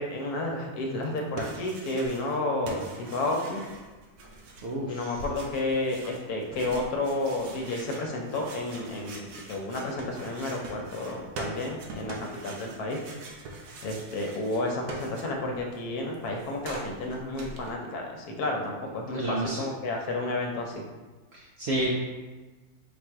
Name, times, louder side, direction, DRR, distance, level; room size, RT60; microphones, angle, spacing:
voice 1, 0.0-3.6 4.9-13.0 13.8-20.8, left 2 dB, 80° left, 1 dB, 1.2 m, -31 dB
sound 1, 1.0-2.4 2.6-15.6 15.9-17.7, right 3 dB, 80° right, 1.2 m, -43 dB
voice 2, 4.6-5.1 19.0-19.6 21.3-21.9, right 1 dB, 65° right, -3 dB, 0.6 m, -30 dB
3.8 x 2.6 x 4.5 m, 1.2 s
omnidirectional pair, 1.6 m